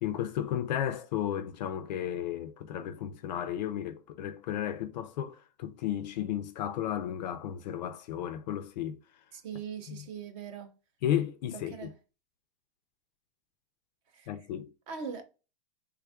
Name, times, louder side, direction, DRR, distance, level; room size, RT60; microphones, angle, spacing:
voice 1, 0.0-9.0 9.9-10.0 11.0-11.9 14.3-14.7, left 10 dB, 45° left, 0.4 m, -33 dB
voice 2, 9.3-10.8 11.5-11.9 14.1-14.4 14.9-15.2, right 6 dB, 30° right, 0.5 m, -41 dB
3.4 x 2.3 x 3.3 m
supercardioid pair, 160°, 30 cm